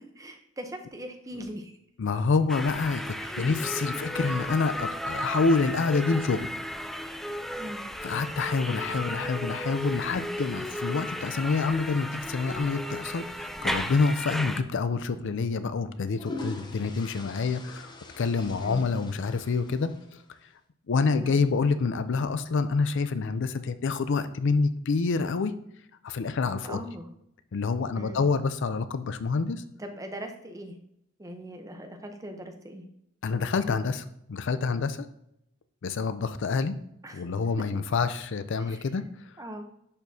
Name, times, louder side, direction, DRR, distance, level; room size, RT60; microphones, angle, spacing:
voice 1, 0.0-1.7 3.2-3.4 7.5-7.8 14.4-14.6 18.6-18.8 21.1-21.4 26.6-27.1 28.0-28.2 29.8-30.8 31.2-32.8 37.0-37.3 38.6-38.8 39.4-39.7, right 1 dB, 15° right, 4 dB, 0.7 m, -40 dB
Speech synthesizer, 1.2-1.6 2.7-3.2 4.6-4.9 6.1-6.6 8.0-8.4 9.7-10.3 11.6-12.1 13.4-13.8 15.0-15.3 16.7-17.0 18.3-18.8, right 1 dB, 80° right, 1.7 m, -52 dB
voice 2, 2.0-6.5 8.0-17.9 18.2-19.9 20.9-25.5 26.0-26.8 27.5-29.6 33.2-35.1 35.8-36.7 37.1-39.0, left 4 dB, 65° left, 12 dB, 0.4 m, -27 dB
sound 1, 2.5-14.6, equal, ahead, 0.3 m, -34 dB
sound 2, 15.8-20.4, left 2 dB, 20° left, 0.7 m, -43 dB
10.5 x 4.4 x 2.7 m, 0.75 s
head